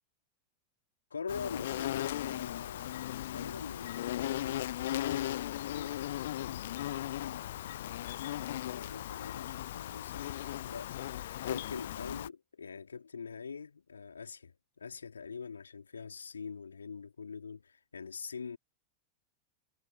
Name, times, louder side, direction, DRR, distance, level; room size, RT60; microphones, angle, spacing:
voice 1, 1.1-6.7 7.2-11.2 11.5-18.6, left 5 dB, 75° left, 4.2 m, -45 dB
Insect, 1.3-12.3, left 13 dB, 55° left, 0.4 m, -37 dB
figure-of-eight pair, 90°, 0 cm